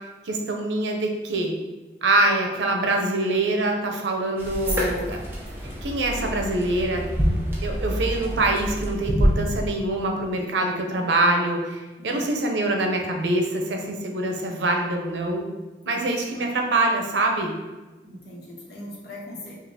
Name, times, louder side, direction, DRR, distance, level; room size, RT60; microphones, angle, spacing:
voice 1, 0.2-1.5 2.0-5.2 5.8-7.4 7.6-15.5 15.9-17.5, right 2 dB, 90° right, 2 dB, 0.6 m, -24 dB
sound 1, 4.4-9.7, equal, 15° right, 0.7 m, -26 dB
voice 2, 15.8-16.4 18.0-19.5, left 1 dB, 70° left, -4 dB, 1.1 m, -41 dB
5.4 x 2.4 x 2.8 m, 1.2 s
head